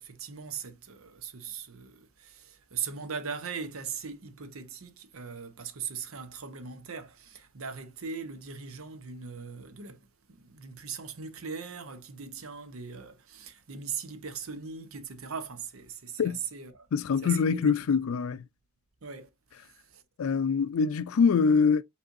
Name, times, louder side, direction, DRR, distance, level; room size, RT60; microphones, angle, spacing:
voice 1, 0.0-16.9 17.2-17.7 19.0-19.3 19.6-20.0, right 6 dB, 85° right, 0.8 m, -40 dB
voice 2, 16.9-18.4 20.2-21.8, left 5 dB, 80° left, 0.4 m, -24 dB
5.3 x 3.3 x 2.6 m
head